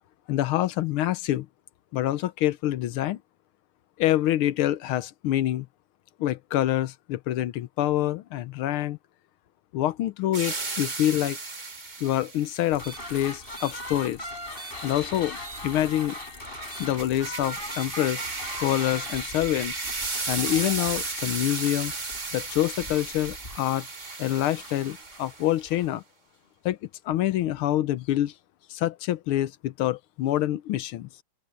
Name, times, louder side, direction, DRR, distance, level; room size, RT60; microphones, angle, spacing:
voice 1, 0.3-1.5 1.9-3.2 4.0-5.7 6.2-9.0 9.7-11.4 12.0-14.2 14.8-15.4 15.6-16.1 16.8-18.2 18.6-19.7 20.3-21.9 22.3-23.9 24.2-26.0 26.6-26.8 27.0-28.3 28.7-31.1, left 13 dB, 80° left, 1.6 m, -26 dB
sound 1, 10.3-12.7 16.6-25.6, right 3 dB, 25° right, 1.3 m, -34 dB
sound 2, 12.7-25.9, left 1 dB, 25° left, 6.6 m, -40 dB
open air
omnidirectional pair, 2.4 m